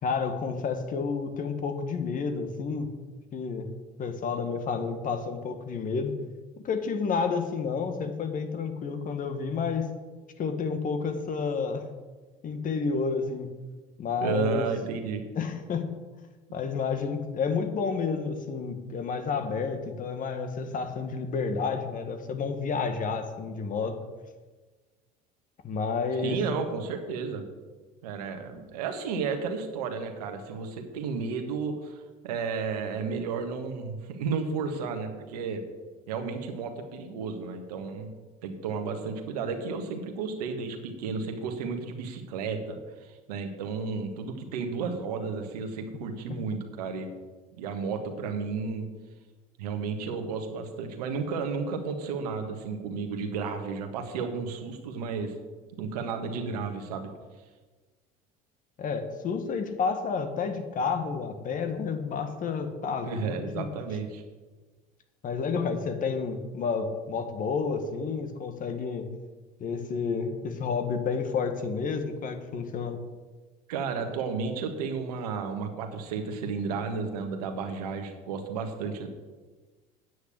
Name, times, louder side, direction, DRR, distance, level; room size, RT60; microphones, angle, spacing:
voice 1, 0.0-2.9 3.3-3.7 4.0-6.1 6.6-9.9 10.4-11.8 12.4-13.5 14.0-14.7 15.3-15.9 16.5-24.0 25.6-26.4 46.3-46.4 58.8-63.7 65.2-69.1 69.6-73.0, left 5 dB, 45° left, 7 dB, 1.7 m, -30 dB
voice 2, 14.2-15.2 26.2-27.4 28.0-32.0 32.2-35.6 36.1-38.1 38.4-47.1 47.6-48.9 49.6-55.3 55.7-57.1 63.1-64.2 73.7-79.1, right 5 dB, 85° right, 5 dB, 1.7 m, -32 dB
9.4 x 6.5 x 8.6 m, 1.3 s
supercardioid pair, 85°, 19 cm